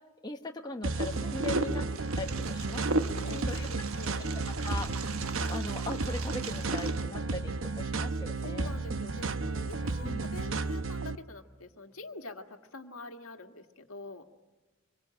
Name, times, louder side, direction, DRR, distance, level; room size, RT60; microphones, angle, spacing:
voice 1, 0.2-1.9 2.2-3.7 4.6-4.9 5.5-8.8 10.0-10.2, left 2 dB, 20° left, 3 dB, 1.1 m, -39 dB
sound 1, 0.8-11.1, right 3 dB, 60° right, 0.9 m, -33 dB
Wind, 1.0-7.0, right 2 dB, 80° right, 1.3 m, -36 dB
voice 2, 3.2-4.4 8.4-14.2, left 2 dB, 75° left, 4 dB, 1.8 m, -46 dB
26.0 x 23.5 x 9.0 m, 1.2 s
head